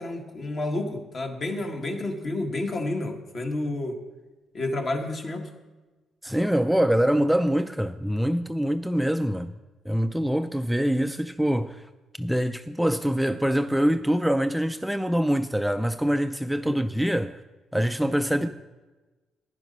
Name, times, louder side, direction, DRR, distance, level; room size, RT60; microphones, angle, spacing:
voice 1, 0.0-4.0 4.5-5.5 16.6-16.8, left 2 dB, 45° left, 1.7 m, -30 dB
voice 2, 6.2-9.5 9.9-11.9 12.2-17.4 17.7-18.5, equal, ahead, 0.4 m, -24 dB
10.5 x 9.4 x 5.4 m
cardioid pair, 90°, 0 cm